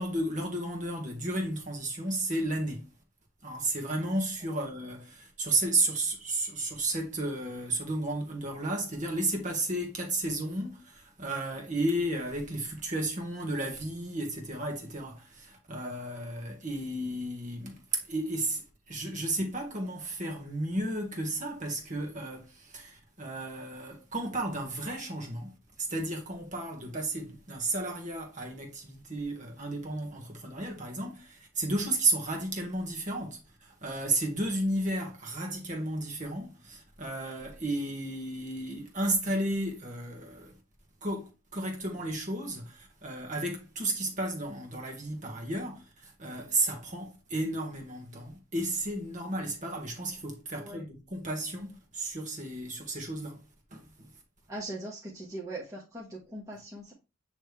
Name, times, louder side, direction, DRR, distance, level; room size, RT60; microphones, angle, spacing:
voice 1, 0.0-2.9 3.4-25.5 25.8-40.5 41.0-53.4 53.7-54.1, right 2 dB, 35° right, 1.7 m, -33 dB
voice 2, 54.5-56.9, right 1 dB, 15° right, 1.3 m, -40 dB
8.8 x 3.3 x 3.4 m
head